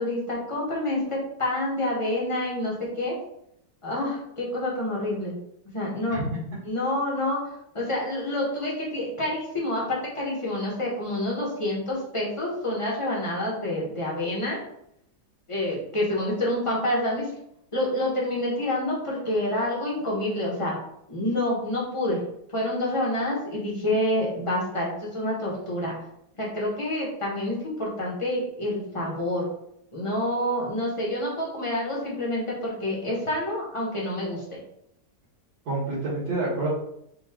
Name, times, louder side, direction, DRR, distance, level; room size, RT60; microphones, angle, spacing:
voice 1, 0.0-3.1 3.8-5.4 5.7-6.2 6.6-14.6 15.5-17.3 17.7-20.8 21.1-22.2 22.5-26.0 26.4-29.5 29.9-34.6, left 1 dB, 20° left, -4 dB, 1.0 m, -28 dB
voice 2, 35.7-36.7, right 2 dB, 85° right, -13 dB, 2.3 m, -28 dB
5.3 x 2.5 x 3.6 m, 0.76 s
omnidirectional pair, 1.9 m